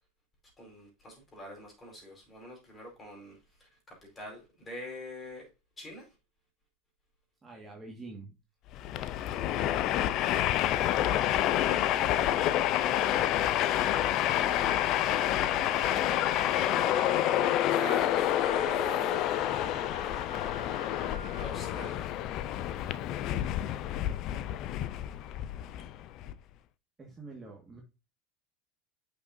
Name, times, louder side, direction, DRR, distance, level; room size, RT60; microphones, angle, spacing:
voice 1, 0.6-5.5 5.8-6.1 11.0-11.4 12.9-14.1 16.6-19.2 21.4-22.2, right 1 dB, 15° left, 4.9 m, -45 dB
voice 2, 7.4-8.3 27.0-27.8, right 3 dB, 15° right, 1.8 m, -46 dB
Train, 8.7-26.3, left 12 dB, 45° left, 0.5 m, -28 dB
Wind instrument woodwind instrument, 13.7-21.5, right 1 dB, 45° right, 2.0 m, -48 dB
8.6 x 6.1 x 2.7 m
supercardioid pair, 135°, 0 cm